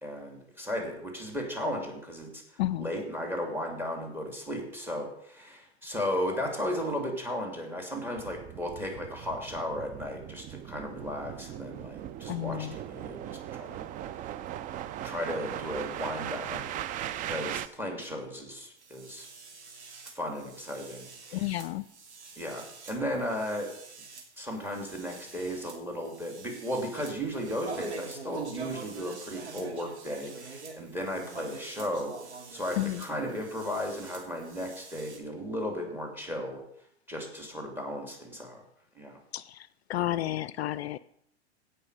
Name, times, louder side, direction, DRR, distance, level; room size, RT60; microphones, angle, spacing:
voice 1, 0.0-2.4 2.8-13.8 15.0-17.0 17.3-19.3 20.1-21.5 22.4-23.7 24.4-32.1 32.5-36.6 37.1-38.6 38.9-39.2, equal, 5° right, 2 dB, 3.1 m, -35 dB
sound 1, 8.2-17.7, right 11 dB, 25° right, 0.4 m, -39 dB
voice 2, 12.3-12.7 21.3-21.8 32.8-33.0 39.3-39.4 39.9-41.0, left 14 dB, 65° left, 17 dB, 0.5 m, -31 dB
sound 2, 18.8-35.2, right 4 dB, 75° right, 2.4 m, -46 dB
16.5 x 5.7 x 5.0 m, 0.71 s
figure-of-eight pair, 95°, 34 cm